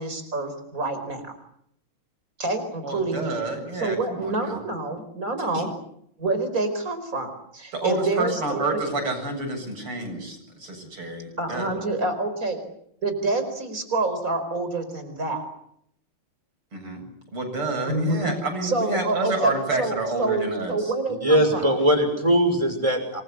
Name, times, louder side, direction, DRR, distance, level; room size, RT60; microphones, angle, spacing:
voice 1, 0.0-1.3 2.4-3.4 3.7-5.7 6.2-8.8 11.4-12.6 13.0-15.5 17.9-18.3 18.6-21.7, right 2 dB, 40° right, 8 dB, 5.2 m, -27 dB
voice 2, 2.8-4.6 5.5-5.6 7.7-11.9 16.7-17.0 17.3-20.9, right 2 dB, 90° right, 4 dB, 8.6 m, -29 dB
voice 3, 21.2-23.2, right 1 dB, 15° right, 6 dB, 6.1 m, -20 dB
28.5 x 23.0 x 8.4 m, 0.73 s
omnidirectional pair, 2.4 m